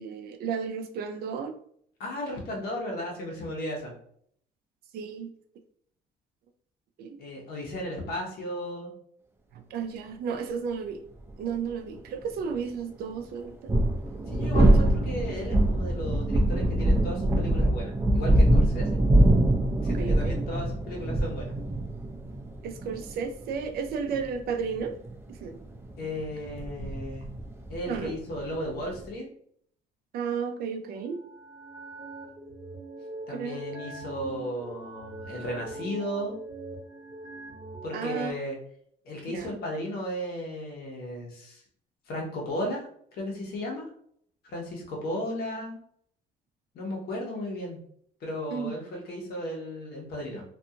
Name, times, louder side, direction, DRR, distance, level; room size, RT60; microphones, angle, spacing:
voice 1, 0.0-1.5 4.9-5.3 7.0-7.2 9.5-11.0 11.4-13.8 19.8-20.3 22.6-25.0 25.4-25.6 27.9-28.2 30.1-31.2 33.3-33.6 37.9-38.3 39.3-39.6 48.5-48.7, right 6 dB, 65° right, 6 dB, 0.5 m, -33 dB
voice 2, 2.0-3.9 7.2-8.9 14.3-19.0 19.8-21.5 26.0-27.3 27.7-29.3 33.3-36.4 37.8-38.6 39.0-41.6 42.1-42.8 43.1-43.9 44.5-45.8 46.7-47.8 48.2-50.4, equal, 65° left, -1 dB, 1.1 m, -35 dB
sound 1, 11.3-11.4 13.4-29.1, right 1 dB, 15° right, 0.5 m, -24 dB
sound 2, 30.9-38.3, right 2 dB, 35° right, 1.0 m, -42 dB
2.6 x 2.4 x 2.7 m, 0.65 s
cardioid pair, 110°, 17 cm